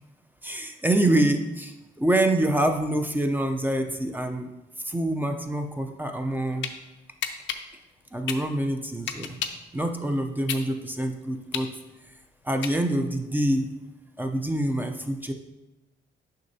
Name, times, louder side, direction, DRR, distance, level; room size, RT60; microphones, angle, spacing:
voice 1, 0.4-4.5 4.9-6.7 8.1-9.4 9.7-11.7 12.5-13.7 14.2-15.3, right 1 dB, 10° right, 5 dB, 0.5 m, -26 dB
sound 1, 6.2-6.7 7.2-9.7 10.1-13.1, left 8 dB, 70° left, 0.5 m, -33 dB
6.4 x 5.7 x 2.7 m, 1.0 s
cardioid pair, 90°, 20 cm